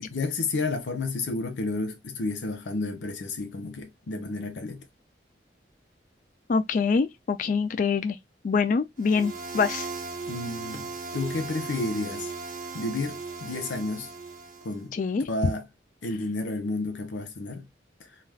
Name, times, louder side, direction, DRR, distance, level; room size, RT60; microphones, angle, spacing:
voice 1, 0.0-4.9 10.3-12.3 12.7-14.1 14.6-14.9 15.3-15.7 16.0-17.6, left 2 dB, 75° left, 0.6 m, -31 dB
voice 2, 6.5-8.2 8.4-9.9 14.9-15.3, left 5 dB, 45° left, 0.3 m, -25 dB
sound 1, 9.0-14.8, right 4 dB, 45° right, 0.4 m, -37 dB
2.3 x 2.3 x 3.3 m
head